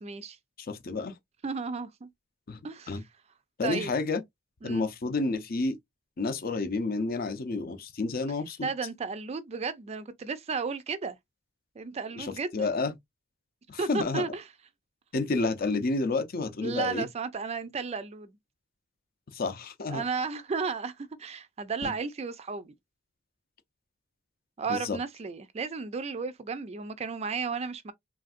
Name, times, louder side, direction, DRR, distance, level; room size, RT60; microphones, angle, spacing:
voice 1, 0.0-0.4 1.4-2.1 2.6-3.0 3.6-3.9 4.6-4.8 8.6-11.2 11.8-12.7 13.8-14.4 16.6-18.4 19.9-22.7 24.6-27.9, right 5 dB, 30° right, 0.3 m, -33 dB
voice 2, 0.6-1.1 2.5-2.6 2.9-3.0 3.6-4.2 4.6-5.8 6.2-8.7 12.2-12.9 13.7-14.3 15.1-17.1 19.3-20.0 21.8-21.9 24.7-25.0, left 3 dB, 45° left, 0.6 m, -30 dB
3.4 x 2.5 x 2.4 m
head